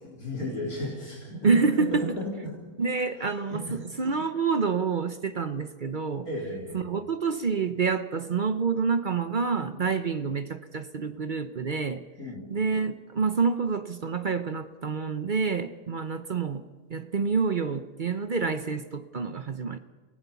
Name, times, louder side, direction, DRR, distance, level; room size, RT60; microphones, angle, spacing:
voice 1, 0.0-2.6 3.2-3.8 6.2-6.8 9.7-9.9 12.2-12.5, left 1 dB, 75° left, -4 dB, 4.2 m, -35 dB
voice 2, 1.4-2.0 2.8-6.3 6.7-12.0 12.5-16.6 16.9-19.8, right 5 dB, 40° right, 10 dB, 0.7 m, -27 dB
27.5 x 17.5 x 7.0 m, 1.3 s
omnidirectional pair, 1.6 m